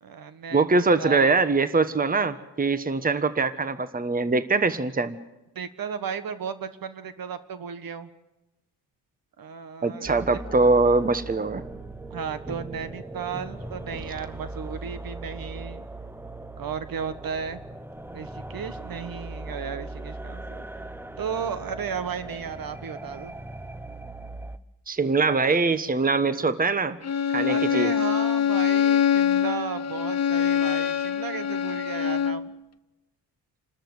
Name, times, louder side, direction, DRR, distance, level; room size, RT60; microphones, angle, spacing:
voice 1, 0.0-1.4 5.5-8.1 9.4-10.4 12.1-15.9 16.6-17.6 18.1-20.6 21.2-23.3 27.5-32.5, right 6 dB, 55° right, 12 dB, 1.5 m, -34 dB
voice 2, 0.5-5.2 9.8-11.6 24.9-27.0 27.3-27.9, right 3 dB, 20° right, 13 dB, 1.2 m, -23 dB
sound 1, 10.0-24.6, right 2 dB, 5° right, 0.9 m, -39 dB
Bowed string instrument, 27.0-32.5, left 8 dB, 40° left, 0.9 m, -24 dB
28.0 x 13.0 x 8.0 m, 1.0 s
supercardioid pair, 60°, 42 cm